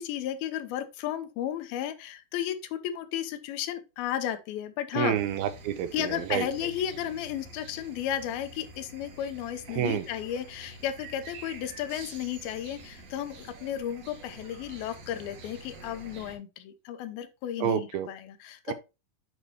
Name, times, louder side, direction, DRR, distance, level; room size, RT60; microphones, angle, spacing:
voice 1, 0.0-5.2 5.9-18.7, left 11 dB, 85° left, 2.6 m, -34 dB
voice 2, 5.0-6.5 9.7-10.0 17.6-18.1 18.7-18.8, right 10 dB, 85° right, 2.6 m, -28 dB
sound 1, 5.1-16.4, right 2 dB, 55° right, 2.1 m, -48 dB
7.9 x 5.1 x 2.9 m
omnidirectional pair, 4.3 m